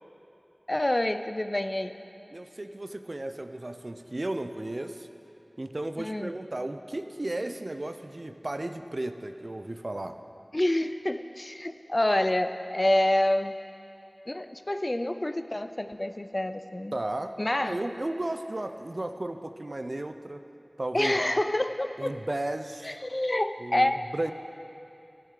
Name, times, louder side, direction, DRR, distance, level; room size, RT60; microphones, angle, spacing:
voice 1, 0.7-1.9 6.0-6.3 10.5-13.5 14.3-16.9 17.4-17.8 20.9-22.1 22.8-24.0, left 1 dB, 40° left, 10 dB, 0.4 m, -27 dB
voice 2, 2.3-5.1 5.6-10.2 16.9-20.4 20.8-21.3 22.0-23.0 23.6-24.3, right 1 dB, 55° right, 8 dB, 0.5 m, -34 dB
13.5 x 10.5 x 3.8 m, 2.8 s
wide cardioid pair, 40°, 0 cm